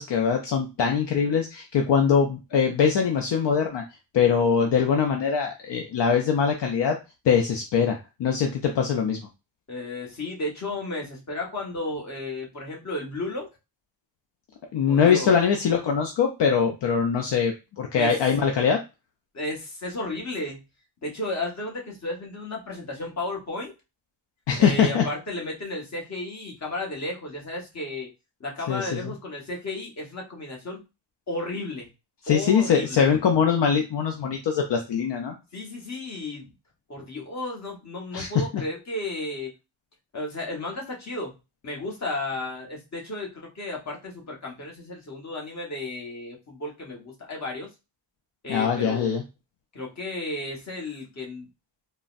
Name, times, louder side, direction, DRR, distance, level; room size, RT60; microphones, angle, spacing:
voice 1, 0.0-3.8 4.1-7.0 7.2-9.2 14.7-18.8 24.5-25.0 28.7-29.1 32.2-35.3 38.1-38.3 38.5-38.6 48.5-49.2, left 6 dB, 65° left, 3 dB, 0.6 m, -22 dB
voice 2, 9.7-13.5 14.9-15.3 17.9-18.1 19.3-20.6 21.0-23.7 24.6-28.1 28.4-30.8 31.3-31.9 32.3-33.1 35.5-36.5 36.9-39.5 40.1-41.3 41.6-47.7 48.4-49.1 49.7-51.5, left 2 dB, 35° left, -1 dB, 1.1 m, -33 dB
3.8 x 2.0 x 2.4 m, 0.26 s
wide cardioid pair, 125°, 47 cm